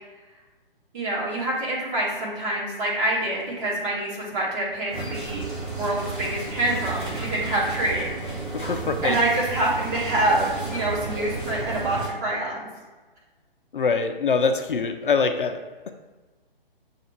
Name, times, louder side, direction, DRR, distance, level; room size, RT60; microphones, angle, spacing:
voice 1, 0.9-5.4 5.7-8.1 9.0-12.7, right 1 dB, 15° right, -5 dB, 0.8 m, -26 dB
sound 1, 4.9-12.1, right 3 dB, 60° right, 1.2 m, -32 dB
voice 2, 8.5-9.2 13.7-15.6, left 5 dB, 60° left, 6 dB, 0.4 m, -24 dB
6.4 x 2.3 x 3.0 m, 1.3 s
figure-of-eight pair, 135°, 29 cm